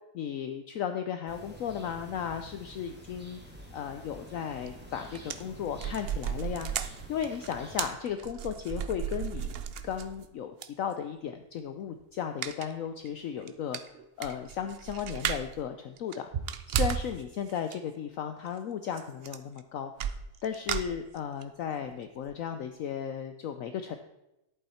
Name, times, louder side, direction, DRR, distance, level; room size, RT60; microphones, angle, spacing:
voice 1, 0.1-3.4 3.7-6.7 7.1-9.5 9.8-16.3 16.7-19.9 20.4-24.0, left 8 dB, 65° left, 7 dB, 1.0 m, -35 dB
sound 1, 1.3-7.9, equal, 5° right, 2.2 m, -48 dB
sound 2, 4.7-4.8 5.1-10.2 10.6-10.7 12.4-12.7 13.1-13.2 13.5-13.6 13.7-15.6 16.0-17.2 17.5-17.8 19.0-19.1 19.2-19.6 20.0-21.4 21.9-22.0 22.3-22.4, right 8 dB, 65° right, 0.6 m, -34 dB
11.0 x 8.7 x 4.3 m, 0.92 s
omnidirectional pair, 1.7 m